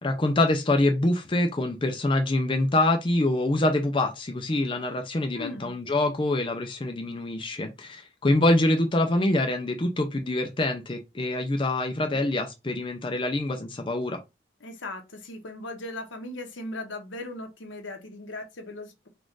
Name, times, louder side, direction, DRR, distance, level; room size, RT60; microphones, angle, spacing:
voice 1, 0.0-14.2, left 1 dB, 25° left, 0.5 m, -25 dB
voice 2, 5.3-5.8 14.6-19.1, left 2 dB, 75° left, 1.1 m, -38 dB
4.1 x 2.5 x 4.6 m
head